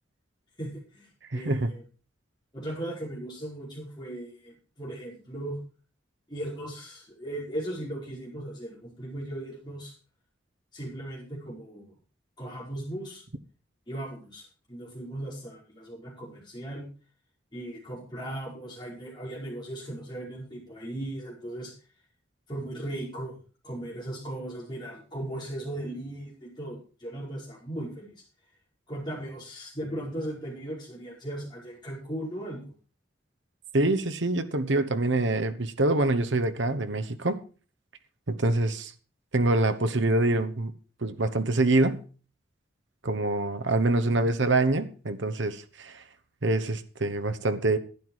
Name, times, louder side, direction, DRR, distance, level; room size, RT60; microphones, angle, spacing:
voice 1, 0.6-1.8 2.5-5.6 6.3-9.9 10.7-11.9 12.4-13.2 13.9-16.9 17.5-21.7 22.5-23.4 23.6-28.2 28.9-32.7, right 1 dB, 25° left, 5.0 m, -37 dB
voice 2, 1.3-1.7 33.7-37.4 38.3-38.9 39.3-40.7 41.0-42.0 43.0-46.0 46.4-47.8, right 2 dB, 70° right, 1.1 m, -25 dB
11.5 x 10.0 x 4.7 m
head